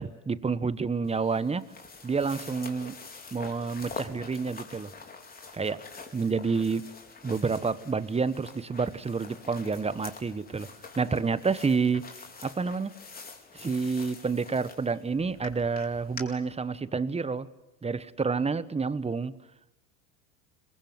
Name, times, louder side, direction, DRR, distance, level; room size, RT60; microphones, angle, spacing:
voice 1, 0.0-1.7 2.0-3.0 3.3-4.9 5.5-5.8 6.1-6.9 7.2-10.7 11.0-12.1 12.4-12.9 13.5-17.5 17.8-19.3, right 4 dB, 15° right, 15 dB, 1.3 m, -29 dB
sound 1, 1.0-16.2, left 4 dB, 20° left, 4.6 m, -46 dB
26.5 x 22.5 x 9.7 m, 0.90 s
supercardioid pair, 105°, 43 cm